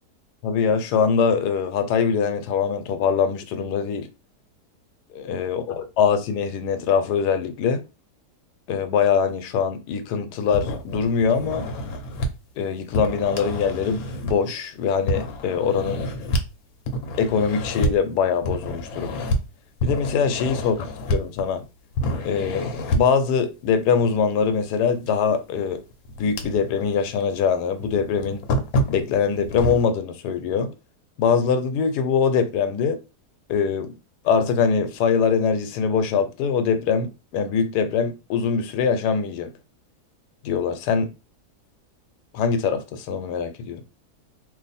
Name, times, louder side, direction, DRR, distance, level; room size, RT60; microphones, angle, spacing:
voice 1, 0.4-4.1 5.1-7.9 8.7-11.7 12.6-16.1 17.2-19.3 19.8-20.7 21.1-21.6 22.2-25.8 26.2-28.4 28.9-30.7 31.2-33.0 33.5-33.9 34.2-39.5 40.4-41.1 42.3-43.8, left 6 dB, 90° left, 1.2 m, -23 dB
sound 1, 10.5-12.3 12.9-14.6 15.1-16.5 16.9-17.9 18.4-19.4 19.8-21.6 21.9-23.2 25.1-25.2 25.7-26.9 27.2-27.3 27.8-29.8, equal, 70° left, 1.1 m, -27 dB
2.6 x 2.5 x 4.0 m
omnidirectional pair, 1.7 m